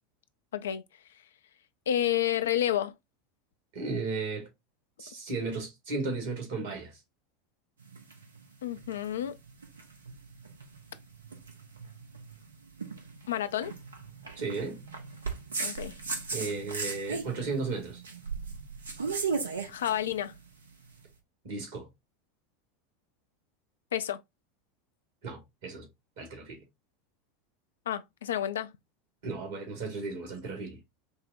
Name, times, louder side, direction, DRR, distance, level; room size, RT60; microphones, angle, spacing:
voice 1, 1.9-2.9 8.6-9.4 13.3-13.7 15.6-15.9 19.7-20.3 23.9-24.2 27.9-28.7, left 11 dB, 70° left, 0.4 m, -30 dB
voice 2, 3.7-4.5 5.0-7.0 14.4-14.8 16.3-18.0 21.4-21.9 25.2-25.9 26.2-26.6 29.2-30.8, right 4 dB, 60° right, 1.7 m, -35 dB
sound 1, 7.8-21.0, right 4 dB, 75° right, 0.7 m, -37 dB
5.3 x 2.1 x 2.6 m
figure-of-eight pair, 80°, 0 cm